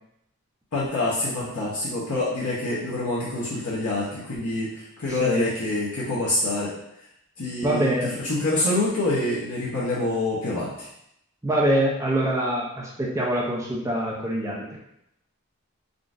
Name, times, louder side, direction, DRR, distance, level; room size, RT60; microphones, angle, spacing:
voice 1, 0.7-6.7 7.4-10.9, left 2 dB, 90° left, -7 dB, 0.8 m, -26 dB
voice 2, 5.1-5.4 7.6-8.1 11.4-14.7, right 1 dB, 15° right, -3 dB, 0.4 m, -24 dB
3.7 x 2.5 x 2.4 m, 0.79 s
head